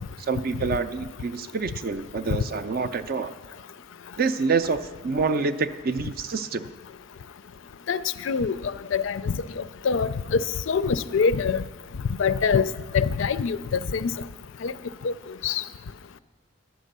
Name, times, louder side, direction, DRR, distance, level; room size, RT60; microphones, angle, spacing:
voice 1, 0.3-3.3 4.2-6.7, right 4 dB, 45° right, 11 dB, 0.4 m, -27 dB
voice 2, 7.9-11.6 12.2-12.7 12.9-14.2 14.6-14.7 15.0-15.1 15.4-15.6, left 5 dB, 60° left, 14 dB, 0.4 m, -25 dB
11.5 x 8.3 x 6.6 m, 1.4 s
head